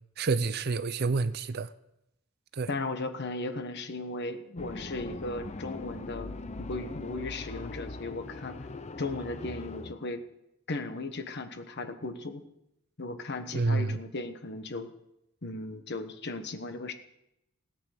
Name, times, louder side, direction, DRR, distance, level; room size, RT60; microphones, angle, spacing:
voice 1, 0.2-1.7 2.5-2.7 13.5-14.0, right 3 dB, 45° right, 0.6 m, -28 dB
voice 2, 2.7-8.6 9.0-10.2 10.7-12.4 13.0-14.9 15.4-16.9, left 2 dB, 50° left, 1.2 m, -36 dB
sound 1, 4.6-9.9, left 3 dB, 30° left, 0.5 m, -40 dB
17.0 x 9.0 x 6.6 m
head